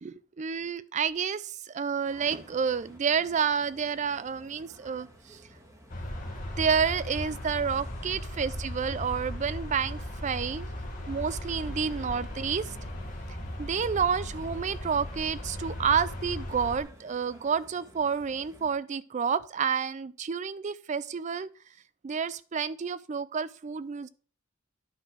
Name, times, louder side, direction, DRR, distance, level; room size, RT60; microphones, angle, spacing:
voice 1, 0.0-5.4 6.6-10.7 11.1-12.8 13.6-21.5 22.0-24.1, right 6 dB, 35° right, 0.4 m, -29 dB
sound 1, 2.1-18.7, equal, 15° right, 1.6 m, -54 dB
sound 2, 5.9-16.8, left 1 dB, 40° left, 1.5 m, -37 dB
10.0 x 4.0 x 6.0 m
head